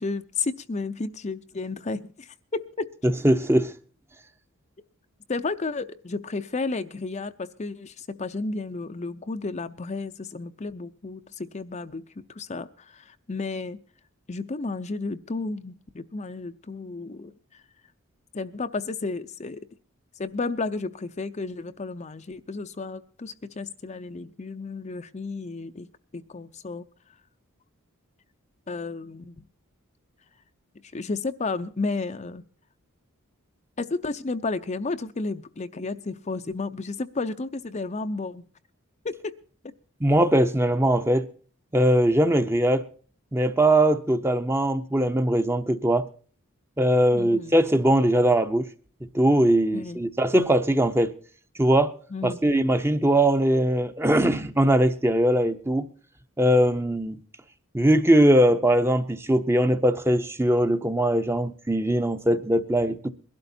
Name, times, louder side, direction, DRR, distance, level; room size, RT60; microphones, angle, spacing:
voice 1, 0.0-2.8 5.3-13.8 14.3-17.6 18.3-19.7 20.2-25.9 26.1-26.9 28.7-29.4 30.9-32.4 33.8-38.4 39.0-39.1 39.6-39.7 47.1-47.5 49.7-50.0 52.1-52.4, left 3 dB, 30° left, 0.5 m, -32 dB
voice 2, 3.2-3.7 40.0-41.3 41.7-42.8 43.3-46.1 46.8-48.7 49.1-51.1 51.6-51.9 52.2-55.9 56.4-57.2 57.7-63.1, right 1 dB, 10° right, 0.7 m, -21 dB
22.5 x 12.0 x 2.7 m
head